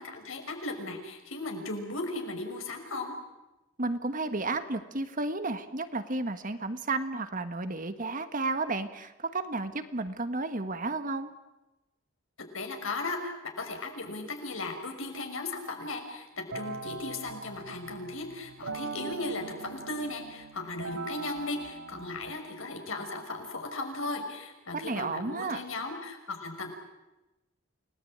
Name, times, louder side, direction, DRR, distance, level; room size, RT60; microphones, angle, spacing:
voice 1, 0.0-3.1 12.5-26.7, left 2 dB, 75° left, 4 dB, 5.8 m, -36 dB
voice 2, 3.8-11.3 24.7-25.6, right 3 dB, 40° right, 9 dB, 1.7 m, -32 dB
sound 1, 16.5-22.4, right 4 dB, 80° right, 2.1 m, -41 dB
29.5 x 19.5 x 8.9 m, 0.99 s
head